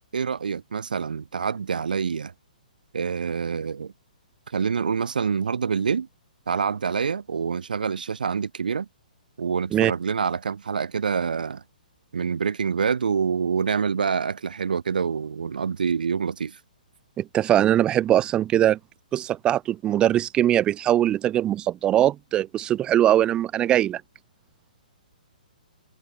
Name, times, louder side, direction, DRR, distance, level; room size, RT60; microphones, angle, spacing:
voice 1, 0.1-2.3 2.9-3.9 4.5-6.1 6.5-8.9 9.4-11.6 12.1-16.6, right 6 dB, 75° right, 1.9 m, -26 dB
voice 2, 17.2-18.8 19.1-24.0, right 12 dB, 20° right, 0.7 m, -21 dB
hypercardioid pair, 130°, 5 cm